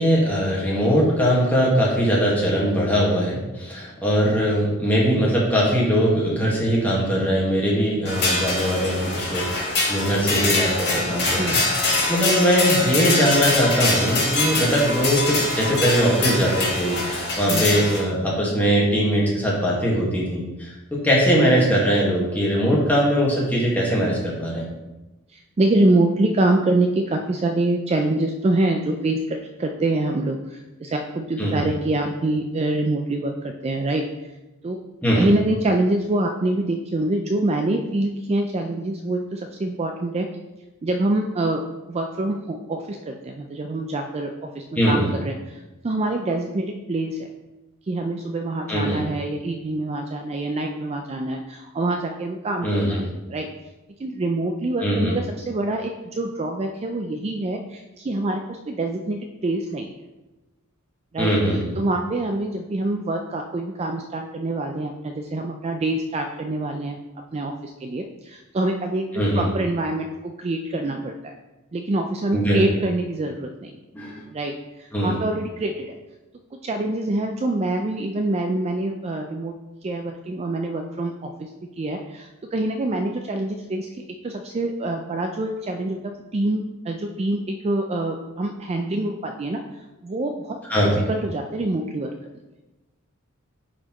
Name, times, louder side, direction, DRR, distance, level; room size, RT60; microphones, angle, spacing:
voice 1, 0.0-11.6 12.1-24.7 31.4-31.7 35.0-35.3 44.7-45.1 48.7-49.0 52.6-53.0 54.8-55.2 61.2-61.8 69.1-69.5 72.3-72.6 73.9-74.2 74.9-75.2 90.7-91.0, equal, 10° left, -5 dB, 1.6 m, -21 dB
sound 1, 8.0-18.0, left 2 dB, 50° left, 2.3 m, -24 dB
voice 2, 25.3-34.3 34.6-34.8 35.1-40.3 40.8-41.6 41.9-47.3 47.9-53.0 53.3-53.5 54.0-59.9 61.1-67.0 67.3-71.3 71.7-73.8 74.3-76.0 76.5-79.6 79.8-81.5 81.8-92.1, right 2 dB, 30° right, 4 dB, 0.4 m, -25 dB
9.5 x 4.2 x 3.0 m, 1.1 s
head